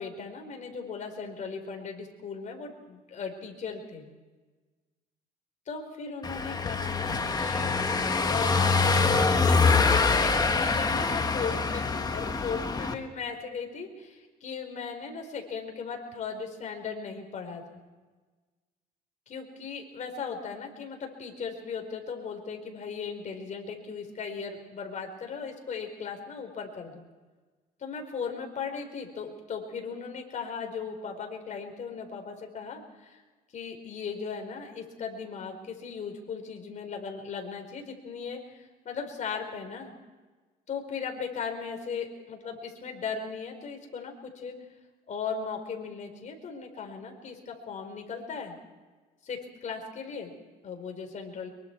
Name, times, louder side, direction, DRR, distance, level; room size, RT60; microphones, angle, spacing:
voice 1, 0.0-4.0 5.7-17.8 19.3-27.0 27.8-33.2 33.5-39.9 40.7-44.6 45.1-48.5 49.2-50.3 50.6-51.5, left 5 dB, 45° left, 3 dB, 4.4 m, -37 dB
Car passing by / Engine, 6.2-12.9, left 4 dB, 25° left, 1.5 m, -25 dB
24.5 x 23.0 x 4.7 m, 1.3 s
cardioid pair, 110°, 17 cm